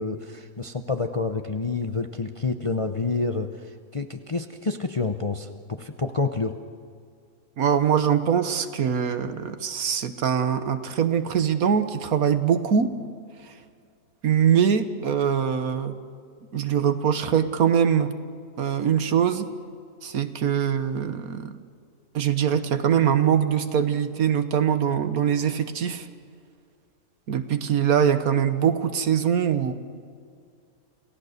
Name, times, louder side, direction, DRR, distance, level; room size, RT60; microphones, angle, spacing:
voice 1, 0.0-6.6, left 3 dB, 30° left, 6 dB, 0.6 m, -28 dB
voice 2, 7.6-12.9 13.4-13.5 14.2-16.0 16.5-18.2 18.6-19.5 20.0-21.6 22.1-26.1 27.3-29.7, right 8 dB, 75° right, 10 dB, 1.6 m, -23 dB
28.5 x 16.5 x 6.6 m, 2.2 s
omnidirectional pair, 1.6 m